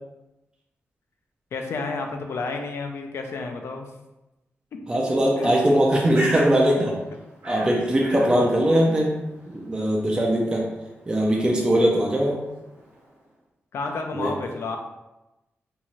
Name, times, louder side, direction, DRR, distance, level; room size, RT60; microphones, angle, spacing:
voice 1, 1.5-3.9 5.4-5.5 8.2-8.3 13.7-14.8, left 3 dB, 70° left, 4 dB, 0.4 m, -31 dB
voice 2, 4.9-7.0 7.4-9.1 9.5-10.7 11.1-12.4 14.1-14.3, right 1 dB, 20° right, -2 dB, 0.4 m, -21 dB
Bird, 5.7-13.3, equal, 65° right, 1.0 m, -40 dB
2.7 x 2.3 x 2.9 m, 0.98 s
wide cardioid pair, 130°, 4 cm